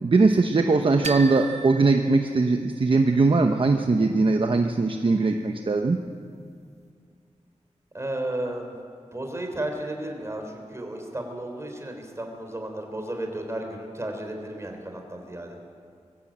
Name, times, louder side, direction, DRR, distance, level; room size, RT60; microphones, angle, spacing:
voice 1, 0.0-6.0, right 3 dB, 45° right, 5 dB, 0.9 m, -21 dB
sound 1, 1.0-3.0, right 3 dB, 65° right, 1.3 m, -36 dB
voice 2, 7.9-8.7 9.1-15.6, right 1 dB, 25° right, 3 dB, 3.5 m, -33 dB
22.5 x 14.5 x 8.7 m, 2.2 s
wide cardioid pair, 110°, 12 cm